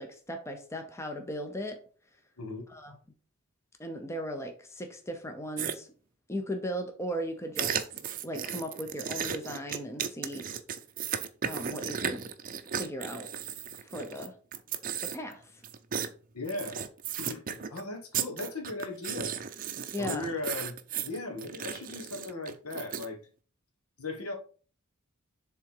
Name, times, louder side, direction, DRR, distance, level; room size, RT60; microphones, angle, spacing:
voice 1, 0.0-1.8 2.7-3.0 3.8-5.9 6.3-7.9 8.2-10.5 11.4-12.3 12.7-13.3 13.8-14.3 15.0-15.6 19.9-20.3, equal, 10° left, 5 dB, 0.8 m, -37 dB
voice 2, 2.4-2.7 16.3-16.9 17.2-19.3 20.0-20.8 21.0-23.2 24.0-24.3, left 2 dB, 90° left, 4 dB, 1.5 m, -37 dB
sound 1, 5.6-5.7 7.6-14.3 14.5-15.3 15.6-16.1 16.4-17.8 18.1-23.1, right 8 dB, 40° right, 0.6 m, -35 dB
7.0 x 3.7 x 4.7 m, 0.40 s
head